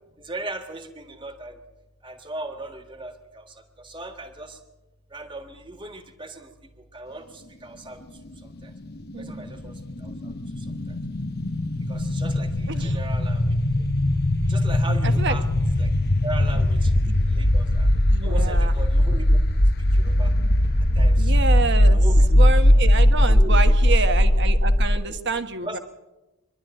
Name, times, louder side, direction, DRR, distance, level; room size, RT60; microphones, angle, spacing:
voice 1, 0.2-1.6 2.0-4.6 5.1-6.5 6.9-8.0 8.6-8.7 9.2-9.7 10.0-11.0 11.9-13.5 14.5-15.4 15.8-15.9 16.2-16.9 17.3-17.9 18.2-19.4 19.9-20.3 21.0-21.3 21.9-22.4 23.3-23.8 24.8-25.2 25.6-25.8, right 2 dB, 20° right, 6 dB, 1.7 m, -38 dB
sound 1, 9.1-25.0, left 1 dB, 45° left, 1.1 m, -19 dB
voice 2, 9.1-9.5 12.7-13.0 15.0-15.4 16.5-16.6 17.1-17.2 18.1-18.7 21.2-22.0 22.4-25.8, right 4 dB, 50° right, 9 dB, 1.3 m, -28 dB
24.5 x 12.0 x 9.0 m, 1.0 s
head